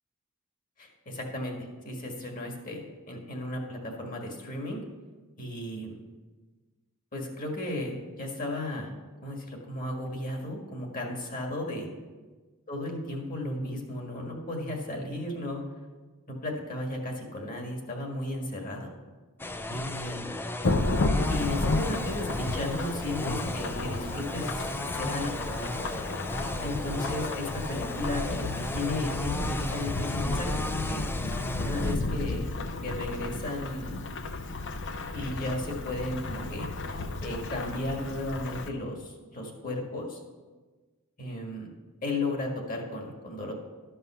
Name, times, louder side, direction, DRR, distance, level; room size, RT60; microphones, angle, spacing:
voice 1, 0.8-1.6 1.8-4.8 5.4-5.9 7.1-8.9 9.2-11.9 12.7-15.6 16.3-18.9 19.7-20.3 21.3-25.4 26.6-30.6 30.9-31.0 31.6-32.5 32.8-34.0 35.1-36.7 37.2-40.2 41.2-41.7 42.0-43.5, left 1 dB, 40° left, 1 dB, 1.8 m, -34 dB
sound 1, 19.4-32.0, left 2 dB, 10° left, 0.3 m, -35 dB
Thunderstorm / Rain, 20.6-38.7, left 2 dB, 55° left, 0.7 m, -32 dB
12.0 x 5.5 x 5.6 m, 1.3 s
head